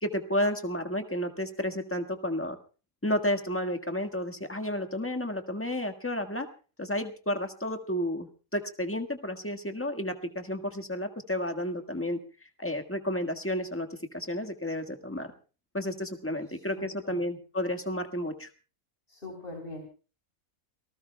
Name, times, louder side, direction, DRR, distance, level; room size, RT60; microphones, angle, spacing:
voice 1, 0.0-2.6 3.0-6.5 6.8-12.2 12.6-13.9 14.1-15.3 15.7-18.5, left 1 dB, 10° left, 5 dB, 1.5 m, -31 dB
voice 2, 16.4-17.2 19.1-19.8, left 2 dB, 45° left, 3 dB, 3.9 m, -43 dB
29.5 x 19.0 x 2.3 m, 0.36 s
omnidirectional pair, 1.4 m